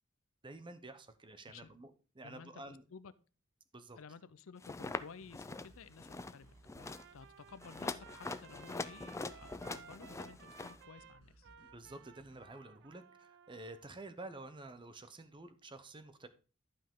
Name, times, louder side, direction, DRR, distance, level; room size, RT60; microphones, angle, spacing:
voice 1, 0.4-2.8 3.7-4.0 11.7-16.3, right 2 dB, 25° right, 11 dB, 0.8 m, -50 dB
voice 2, 2.2-3.1 4.0-11.5, left 5 dB, 70° left, 16 dB, 0.5 m, -54 dB
sound 1, 4.6-5.0 5.3-5.7 6.0-6.4 6.7-7.0 7.6-10.8, left 3 dB, 15° left, 0.4 m, -43 dB
sound 2, 4.9-12.5, right 2 dB, 80° right, 1.2 m, -63 dB
Trumpet, 6.8-13.9, right 7 dB, 60° right, 0.4 m, -58 dB
11.5 x 5.4 x 3.7 m, 0.35 s
head